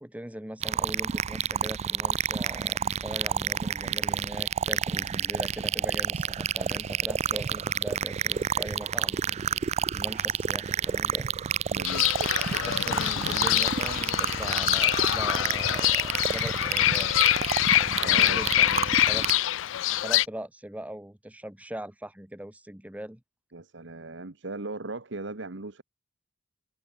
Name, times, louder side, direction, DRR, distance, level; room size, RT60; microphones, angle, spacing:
voice 1, 0.0-9.4 9.9-11.3 12.8-17.4 18.0-19.3 19.9-23.2, right 1 dB, 10° right, 1.2 m, -40 dB
sound 1, 0.6-19.3, right 8 dB, 35° right, 0.3 m, -29 dB
voice 2, 11.7-12.1 18.0-18.4 23.5-25.8, right 3 dB, 65° right, 1.4 m, -37 dB
Fowl / Bird, 11.8-20.3, left 13 dB, 80° left, 0.4 m, -25 dB
head